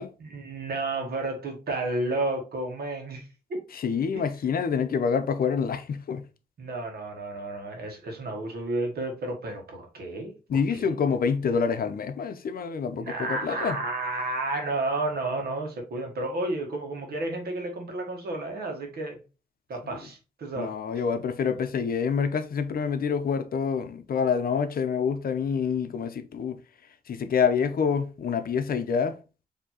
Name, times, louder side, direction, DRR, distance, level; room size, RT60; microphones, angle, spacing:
voice 1, 0.2-3.6 4.1-4.2 6.6-10.3 10.7-10.9 12.9-19.2 19.7-20.7, right 2 dB, 80° right, 1.2 m, -31 dB
voice 2, 3.7-6.2 10.5-13.8 20.6-26.6 27.1-29.2, left 6 dB, 65° left, 0.6 m, -27 dB
4.5 x 2.8 x 2.8 m
cardioid pair, 75°, 16 cm